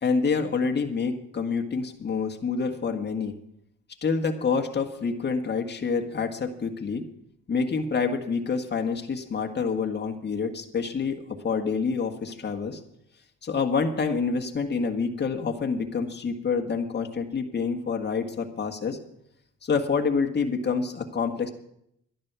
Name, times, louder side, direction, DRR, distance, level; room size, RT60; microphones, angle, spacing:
voice 1, 0.0-3.3 4.0-7.0 7.5-12.8 13.4-19.0 19.6-21.5, left 5 dB, 35° left, 4 dB, 1.7 m, -27 dB
12.0 x 11.0 x 6.1 m, 0.75 s
cardioid pair, 90°, 30 cm